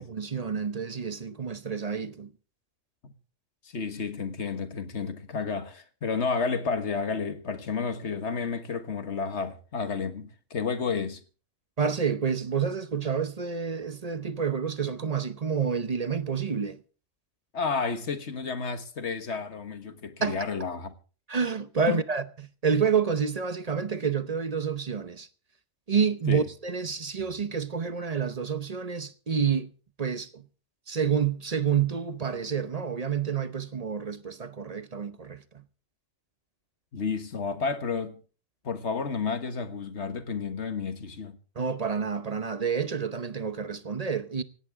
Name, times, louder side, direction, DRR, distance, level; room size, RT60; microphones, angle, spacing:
voice 1, 0.0-2.3 11.8-16.8 20.2-20.4 21.3-25.3 25.9-29.7 30.0-30.4 30.9-35.4 41.6-44.4, right 6 dB, 35° right, 0.8 m, -29 dB
voice 2, 3.6-11.2 17.5-20.9 21.9-22.0 26.3-26.4 36.9-38.2 38.6-41.4, left 5 dB, 60° left, 1.7 m, -31 dB
18.0 x 16.5 x 3.6 m
omnidirectional pair, 1.3 m